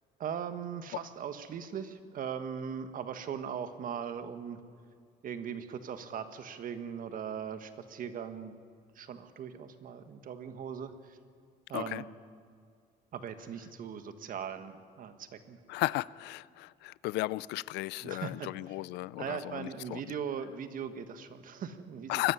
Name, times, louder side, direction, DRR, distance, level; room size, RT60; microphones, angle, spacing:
voice 1, 0.2-4.6 5.2-8.5 8.9-11.2 11.7-12.1 13.1-15.6 18.0-18.5 19.2-22.2, right 7 dB, 55° right, 1.5 m, -39 dB
voice 2, 15.7-20.0 22.1-22.3, left 19 dB, 85° left, 0.4 m, -34 dB
22.5 x 12.0 x 9.9 m
cardioid pair, 110°, 17 cm